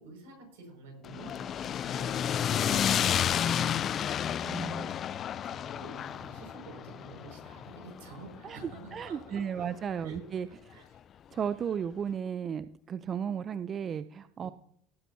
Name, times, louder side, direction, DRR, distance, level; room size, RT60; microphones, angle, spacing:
voice 1, 0.0-4.5 5.5-9.7 10.0-11.0 14.4-14.5, right 2 dB, 80° right, 2 dB, 5.9 m, -49 dB
sound 1, 1.0-9.3, left 9 dB, 45° left, 0.4 m, -31 dB
voice 2, 4.4-4.9 8.4-8.6 8.9-10.5 11.3-14.5, right 7 dB, 40° right, 13 dB, 0.5 m, -34 dB
18.5 x 9.0 x 2.8 m, 0.66 s
hypercardioid pair, 80°, 0 cm